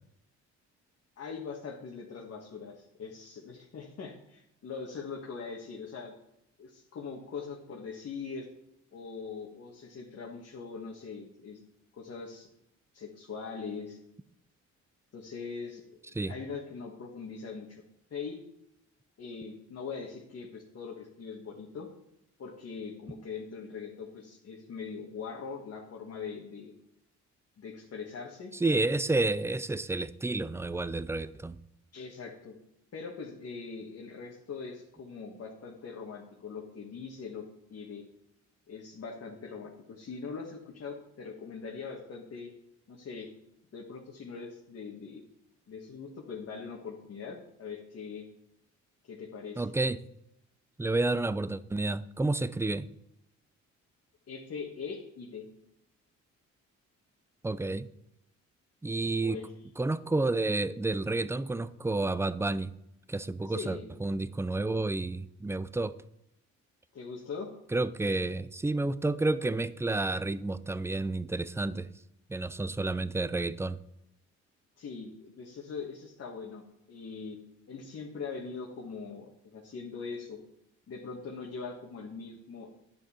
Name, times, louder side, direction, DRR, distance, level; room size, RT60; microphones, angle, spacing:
voice 1, 1.2-6.1 6.6-8.5 8.9-11.6 11.9-12.5 12.9-14.0 15.1-15.8 16.3-17.8 18.1-18.4 19.2-21.9 22.4-26.7 27.6-28.5 31.9-32.6 32.9-37.4 37.7-38.0 38.7-42.5 42.9-43.3 43.7-45.2 45.7-48.3 49.0-49.6 54.3-55.5 59.2-59.5 63.5-63.9 66.9-67.5 68.0-68.1 74.8-77.4 77.7-80.4 80.9-82.7, left 5 dB, 55° left, -1 dB, 1.6 m, -41 dB
voice 2, 28.6-31.6 49.6-50.0 50.8-52.9 57.4-57.9 58.8-59.4 59.8-62.7 63.1-65.9 67.7-71.9 72.3-73.8, right 2 dB, 10° right, 16 dB, 0.4 m, -30 dB
10.5 x 7.1 x 4.4 m, 0.81 s
cardioid pair, 90°, 30 cm